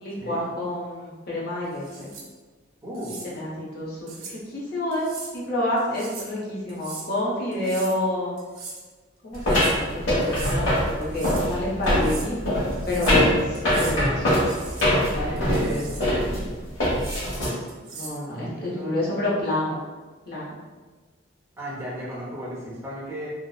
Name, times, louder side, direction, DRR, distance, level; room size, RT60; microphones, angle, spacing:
voice 1, 0.0-2.1 3.1-8.4 9.2-12.4 12.8-14.3 15.0-16.0 17.9-19.8 20.3-20.5, left 1 dB, 50° left, -6 dB, 0.7 m, -28 dB
sound 1, 1.7-2.3 2.9-3.3 4.1-4.4 4.9-5.3 5.8-6.3 6.7-7.1 7.5-8.0 8.4-8.8 9.3-9.8 10.2-10.6 11.0-11.5 11.8-12.3 12.7-13.2 13.5-14.0 14.4-14.9 15.4-16.1 16.8-17.2 17.7-18.2, right 3 dB, 85° right, 0.5 m, -40 dB
voice 2, 2.8-3.2 15.2-16.5 18.3-19.1 21.6-23.3, equal, 15° right, -7 dB, 0.5 m, -34 dB
sound 2, 9.4-17.5, equal, 80° left, 1.0 m, -23 dB
2.7 x 2.0 x 2.3 m, 1.4 s
head